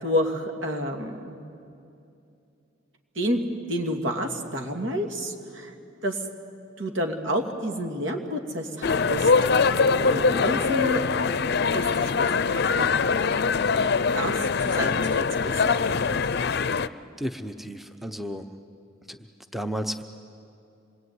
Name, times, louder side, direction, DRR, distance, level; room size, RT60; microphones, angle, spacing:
voice 1, 0.0-1.4 3.1-5.7 6.0-6.2 6.8-9.3 9.8-11.0 11.7-12.2 12.5-12.9 14.1-15.6, equal, 70° right, 3 dB, 2.6 m, -29 dB
sound 1, 8.8-16.9, left 5 dB, 55° left, 0.6 m, -23 dB
voice 2, 17.2-18.4 19.1-19.2 19.5-20.0, equal, ahead, 8 dB, 0.9 m, -32 dB
26.5 x 21.5 x 9.6 m, 2.6 s
head